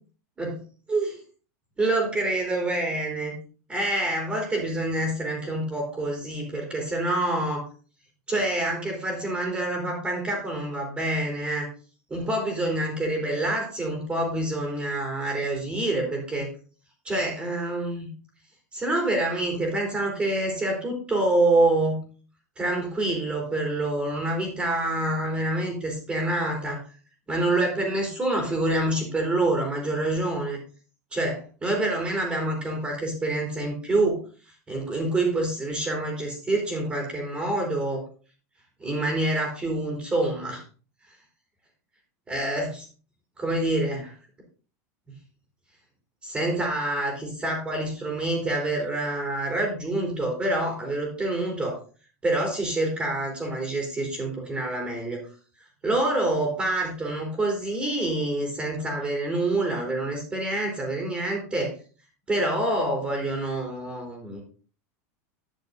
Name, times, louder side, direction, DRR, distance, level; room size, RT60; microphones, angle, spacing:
voice 1, 1.8-3.4 3.7-7.6 8.3-11.7 12.1-16.5 17.0-18.1 18.7-22.0 22.6-26.8 27.3-30.6 31.1-34.2 34.7-38.0 38.8-40.6 42.3-42.9 43.4-44.1 46.2-51.8 52.2-55.2 55.8-61.7 62.3-64.4, right 2 dB, 15° right, 0 dB, 3.5 m, -26 dB
11.5 x 7.0 x 4.0 m, 0.38 s
supercardioid pair, 145°, 9 cm